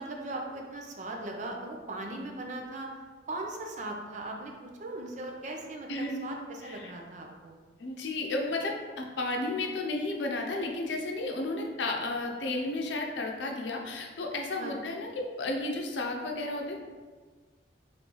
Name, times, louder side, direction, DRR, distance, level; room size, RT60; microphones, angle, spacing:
voice 1, 0.0-2.9 3.3-7.6 14.6-14.8, right 2 dB, 45° right, 1 dB, 0.5 m, -39 dB
voice 2, 6.6-6.9 7.8-16.8, left 2 dB, 85° left, 1 dB, 0.6 m, -33 dB
3.9 x 3.2 x 3.0 m, 1.4 s
head